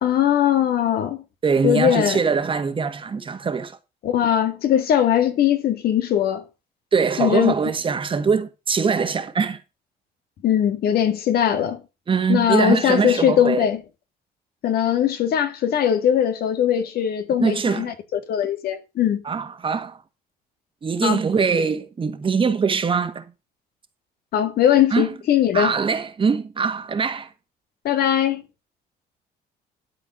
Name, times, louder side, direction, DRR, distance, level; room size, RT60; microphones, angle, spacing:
voice 1, 0.0-1.2 1.6-2.2 4.0-6.4 7.2-7.5 10.4-11.8 12.3-13.8 14.6-19.2 21.0-21.2 24.3-25.7 27.8-28.4, left 10 dB, 65° left, 1.9 m, -20 dB
voice 2, 1.4-3.8 6.9-9.6 12.1-13.7 17.4-17.9 19.2-20.0 20.8-23.3 24.9-25.1 25.5-27.3, right 5 dB, 30° right, 1.6 m, -22 dB
12.5 x 4.6 x 7.1 m
cardioid pair, 110°, 17 cm